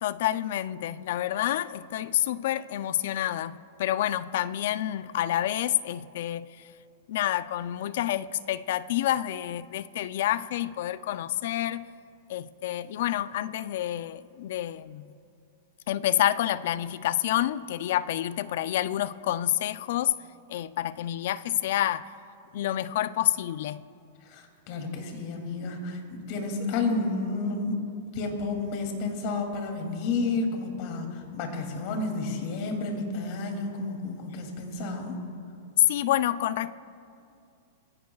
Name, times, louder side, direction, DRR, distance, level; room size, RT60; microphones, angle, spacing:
voice 1, 0.0-6.5 7.1-11.9 12.3-15.1 15.9-20.2 20.5-22.1 22.5-23.8 35.9-36.7, left 12 dB, 65° left, 16 dB, 0.4 m, -28 dB
voice 2, 24.2-27.8 28.1-35.2, left 3 dB, 50° left, 2 dB, 2.8 m, -31 dB
23.0 x 16.0 x 2.4 m, 2.5 s
hypercardioid pair, 135°, 0 cm